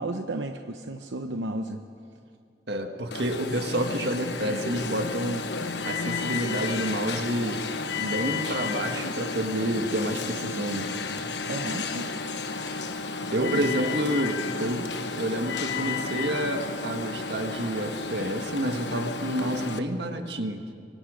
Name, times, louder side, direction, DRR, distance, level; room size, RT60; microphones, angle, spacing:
voice 1, 0.0-1.8 11.5-12.1 13.4-13.8 14.6-14.8, right 2 dB, 90° right, 6 dB, 0.9 m, -33 dB
voice 2, 2.7-5.5 5.8-7.7 8.0-10.9 13.3-14.9 15.2-20.7, right 1 dB, 65° right, 6 dB, 1.6 m, -29 dB
Alarm, 3.1-19.8, left 4 dB, 75° left, 1.2 m, -32 dB
25.5 x 24.0 x 5.1 m, 2.3 s
head